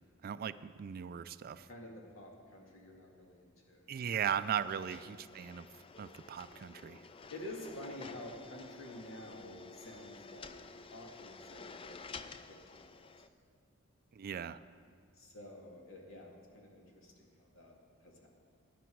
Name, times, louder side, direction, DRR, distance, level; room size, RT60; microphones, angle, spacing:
voice 1, 0.2-1.7 3.9-5.7 6.0-7.0 14.2-14.6, right 8 dB, 45° right, 14 dB, 0.3 m, -38 dB
voice 2, 1.7-4.0 4.8-5.3 7.3-10.6 10.9-13.1 15.1-17.7 18.0-18.3, left 1 dB, 65° left, 0 dB, 2.2 m, -50 dB
sound 1, 4.3-13.3, left 4 dB, 25° left, 0.4 m, -51 dB
17.5 x 10.0 x 4.6 m, 2.2 s
head